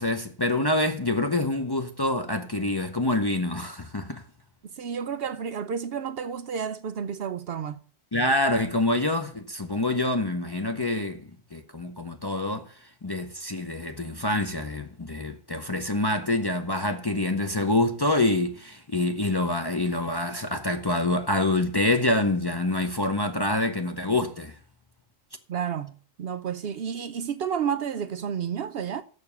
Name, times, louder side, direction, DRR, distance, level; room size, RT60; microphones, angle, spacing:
voice 1, 0.0-4.2 8.1-12.7 13.0-24.6, left 2 dB, 30° left, 0.4 m, -26 dB
voice 2, 4.6-7.8 25.5-29.0, right 7 dB, 60° right, 0.7 m, -31 dB
6.8 x 6.6 x 6.8 m
omnidirectional pair, 1.4 m